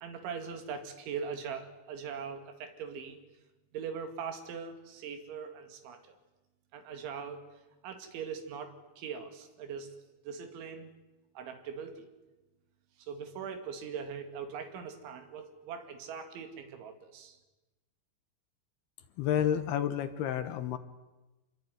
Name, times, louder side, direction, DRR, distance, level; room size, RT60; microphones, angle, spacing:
voice 1, 0.0-3.2 3.7-6.1 6.7-7.5 7.8-9.9 10.2-10.9 11.4-12.1 13.0-17.4, right 6 dB, 80° right, 6 dB, 4.7 m, -41 dB
voice 2, 19.2-20.8, left 9 dB, 70° left, 11 dB, 2.8 m, -30 dB
27.5 x 22.0 x 9.4 m, 1.1 s
omnidirectional pair, 5.3 m